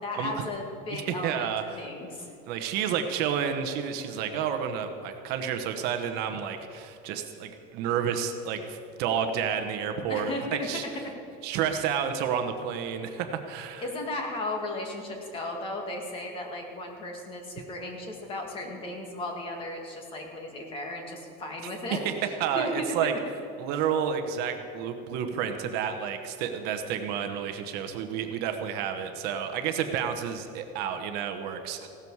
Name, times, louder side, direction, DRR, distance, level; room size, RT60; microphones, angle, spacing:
voice 1, 0.0-1.5 1.7-2.3 10.1-10.7 11.7-11.9 13.8-22.8 23.7-23.8, left 2 dB, 25° left, 2 dB, 2.0 m, -35 dB
voice 2, 0.9-1.9 2.5-10.3 10.6-10.9 11.4-13.8 22.0-22.1 22.4-23.1 23.6-31.8, right 8 dB, 50° right, 6 dB, 1.1 m, -30 dB
16.5 x 13.0 x 4.7 m, 2.8 s
cardioid pair, 180°, 21 cm